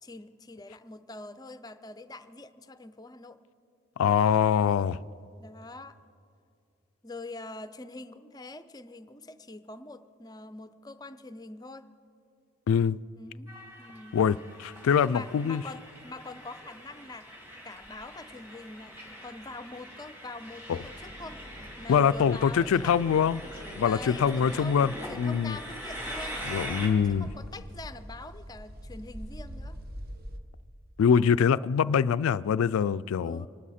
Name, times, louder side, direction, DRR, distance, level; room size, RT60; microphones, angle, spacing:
voice 1, 0.0-3.4 5.4-6.0 7.0-11.9 13.2-13.5 13.8-14.2 15.1-17.3 17.6-21.4 21.8-23.0 23.8-26.5 26.8-29.8 33.2-33.5, left 2 dB, 20° left, 0.5 m, -44 dB
voice 2, 4.0-5.0 12.7-13.0 14.1-15.6 20.7-20.8 21.9-23.4 23.8-24.9 25.2-25.6 26.5-27.3 31.0-33.4, left 7 dB, 75° left, 0.3 m, -24 dB
Train, 13.5-26.9, equal, 10° right, 2.5 m, -43 dB
sound 1, 20.7-30.4, equal, 45° right, 0.9 m, -45 dB
25.5 x 12.0 x 4.3 m
head